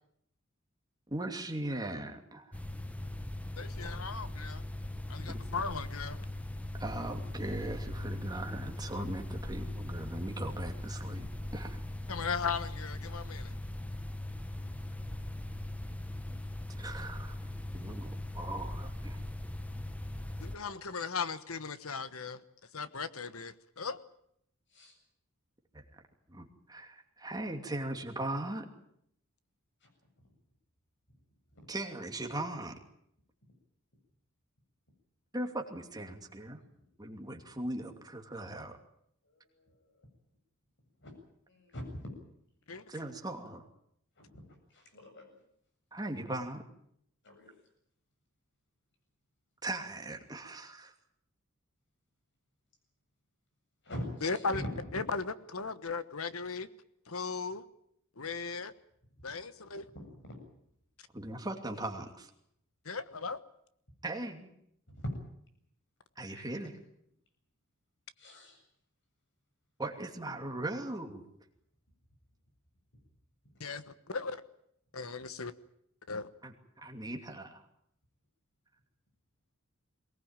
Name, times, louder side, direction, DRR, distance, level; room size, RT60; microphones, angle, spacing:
voice 1, 1.1-2.5 5.3-5.4 6.8-11.8 16.8-17.4 17.7-19.2 25.7-25.8 26.3-28.7 31.7-32.8 35.3-36.6 37.0-38.8 42.9-43.6 45.9-46.6 49.6-50.9 61.1-62.3 64.0-64.5 66.2-66.8 69.8-71.2 76.4-77.6, right 1 dB, 20° right, 4 dB, 2.7 m, -39 dB
sound 1, 2.5-20.6, left 1 dB, 5° left, 1.1 m, -40 dB
voice 2, 3.6-4.6 5.1-6.2 12.1-13.5 20.4-22.4 22.7-24.0 42.7-42.8 54.2-54.6 54.9-56.7 57.1-57.6 58.2-58.7 59.2-59.9 62.8-63.4 73.6-74.4 74.9-75.5 76.1-76.3, left 4 dB, 80° left, 13 dB, 1.3 m, -37 dB
voice 3, 41.5-41.9 42.9-43.0 44.2-44.4 44.7-45.3 47.2-47.5 53.8-54.7 59.9-60.3 66.3-66.5 68.2-68.6, left 1 dB, 60° left, 4 dB, 7.7 m, -43 dB
22.5 x 19.0 x 9.0 m, 0.72 s
head